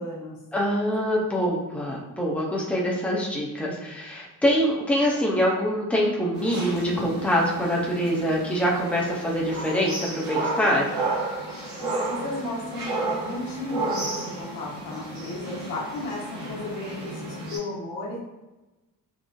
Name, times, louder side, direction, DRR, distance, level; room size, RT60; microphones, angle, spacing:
voice 1, 0.0-0.3 11.8-18.2, left 2 dB, 70° left, -5 dB, 1.1 m, -34 dB
voice 2, 0.5-10.9, equal, 5° left, -4 dB, 0.5 m, -24 dB
sound 1, 6.3-17.6, right 2 dB, 75° right, 1.2 m, -32 dB
3.8 x 2.3 x 2.5 m, 1.1 s
cardioid pair, 170°, 33 cm